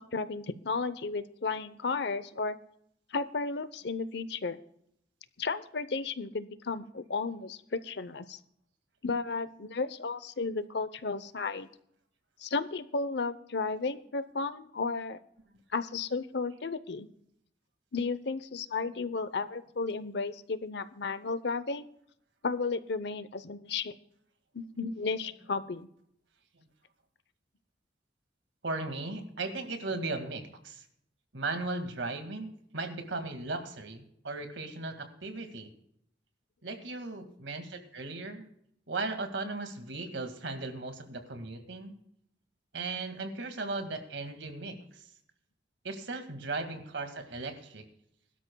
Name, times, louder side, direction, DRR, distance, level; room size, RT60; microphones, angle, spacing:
voice 1, 0.0-2.6 3.1-4.6 5.4-8.4 9.0-11.7 12.4-15.2 15.7-17.1 17.9-21.9 22.4-23.9 24.5-25.9, left 4 dB, 65° left, 14 dB, 0.8 m, -33 dB
voice 2, 28.6-30.9 31.3-35.7 36.6-38.4 38.9-42.0 42.7-45.1 45.8-47.9, right 3 dB, 90° right, 6 dB, 2.0 m, -37 dB
21.5 x 12.5 x 2.3 m, 0.72 s
head